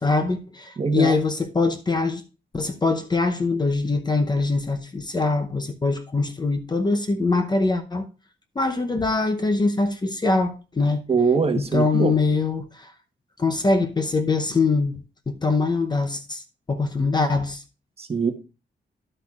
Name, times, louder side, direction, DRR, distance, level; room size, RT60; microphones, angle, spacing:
voice 1, 0.0-2.2 2.5-8.1 8.6-11.0 11.5-12.9 13.4-17.6, left 3 dB, 25° left, 0.7 m, -23 dB
voice 2, 0.8-1.2 11.1-12.2 18.0-18.3, right 5 dB, 30° right, 1.1 m, -22 dB
11.0 x 8.2 x 2.4 m
wide cardioid pair, 170°, 19 cm